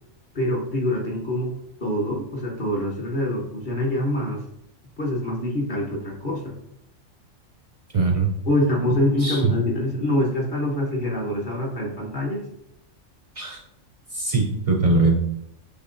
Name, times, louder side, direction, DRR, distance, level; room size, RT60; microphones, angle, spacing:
voice 1, 0.3-1.5 1.8-4.4 5.0-6.6 8.4-12.5, left 1 dB, 40° left, -2 dB, 1.1 m, -25 dB
voice 2, 7.9-8.3 9.2-9.5 13.4-13.6 14.1-15.2, right 3 dB, 60° right, 1 dB, 0.3 m, -21 dB
6.5 x 3.0 x 2.6 m, 0.78 s
omnidirectional pair, 1.3 m